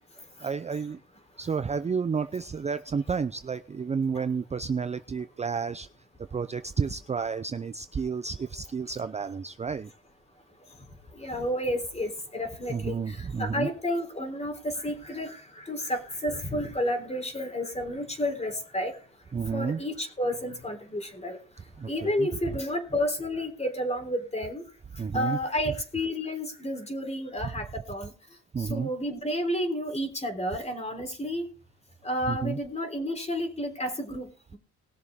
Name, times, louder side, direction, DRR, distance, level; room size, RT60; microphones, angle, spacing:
voice 1, 0.4-1.0 1.4-5.9 6.3-9.9 12.7-13.7 19.3-19.8 21.8-22.3 25.0-25.4 28.5-28.9 32.3-32.6, right 5 dB, 20° right, 12 dB, 0.5 m, -31 dB
voice 2, 11.2-19.0 19.5-21.4 21.9-24.6 25.1-28.1 28.6-31.5 32.0-34.6, left 1 dB, 20° left, 5 dB, 3.5 m, -31 dB
20.5 x 7.0 x 3.6 m, 0.44 s
cardioid pair, 90°, 30 cm